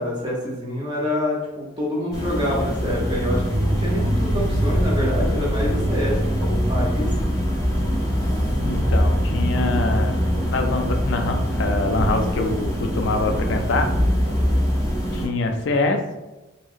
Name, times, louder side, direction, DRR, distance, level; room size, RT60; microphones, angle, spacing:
voice 1, 0.0-7.1, left 1 dB, 20° right, -4 dB, 0.6 m, -26 dB
sound 1, 2.1-15.3, equal, 15° left, 0.7 m, -24 dB
sound 2, 2.6-13.6, right 1 dB, 70° right, 0.9 m, -27 dB
sound 3, 5.0-14.5, right 1 dB, 40° right, 0.3 m, -36 dB
voice 2, 8.6-10.2 10.5-13.9 15.1-16.0, left 3 dB, 65° left, 5 dB, 0.4 m, -24 dB
2.8 x 2.8 x 2.4 m, 1.1 s
head